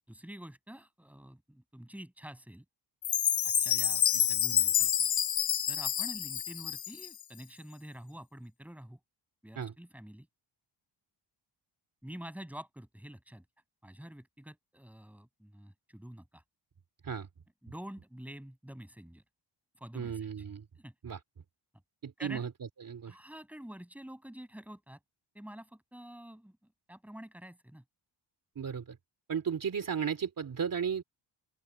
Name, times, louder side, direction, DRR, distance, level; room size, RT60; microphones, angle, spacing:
voice 1, 0.1-2.6 3.4-4.9 5.7-9.0 9.4-10.3 12.0-13.4 13.8-16.4 17.6-19.2 19.8-20.3 20.8-20.9 22.2-22.4 23.1-25.0 25.3-27.8, equal, 5° right, 7.6 m, -48 dB
Chime, 3.0-7.2, left 9 dB, 40° left, 0.5 m, -28 dB
voice 2, 19.9-20.6 21.0-21.2 22.0-22.5 22.8-23.2 28.5-29.0 29.3-31.0, right 7 dB, 45° right, 2.9 m, -34 dB
open air
wide cardioid pair, 170°, 47 cm